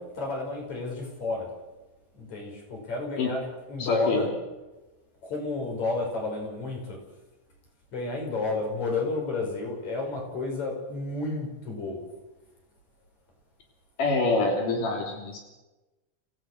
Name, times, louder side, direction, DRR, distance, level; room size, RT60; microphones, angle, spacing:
voice 1, 0.0-1.5 2.2-4.3 5.2-7.0 7.9-12.0, left 3 dB, 60° left, 0 dB, 6.8 m, -31 dB
voice 2, 3.8-4.3 14.0-15.4, left 3 dB, 85° left, 0 dB, 4.7 m, -26 dB
28.0 x 16.5 x 6.5 m, 1.1 s
omnidirectional pair, 3.6 m